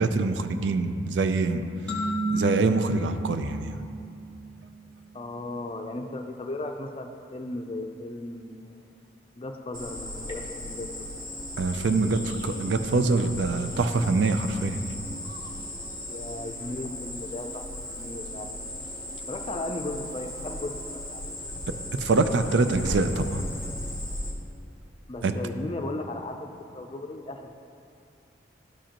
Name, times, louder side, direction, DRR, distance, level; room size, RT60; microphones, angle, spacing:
voice 1, 0.0-1.6 2.3-3.8 11.6-15.0 15.3-15.4 21.7-23.4 25.2-25.3, right 3 dB, 80° right, 9 dB, 0.4 m, -25 dB
sound 1, 1.9-4.5, right 2 dB, 5° left, 0.9 m, -31 dB
voice 2, 5.1-8.8 9.4-11.2 16.1-18.7 19.3-21.4 25.1-27.5, left 2 dB, 30° left, 5 dB, 0.4 m, -36 dB
Cricket, 9.7-24.3, left 1 dB, 20° right, 0.9 m, -37 dB
11.5 x 5.1 x 2.9 m, 2.5 s
head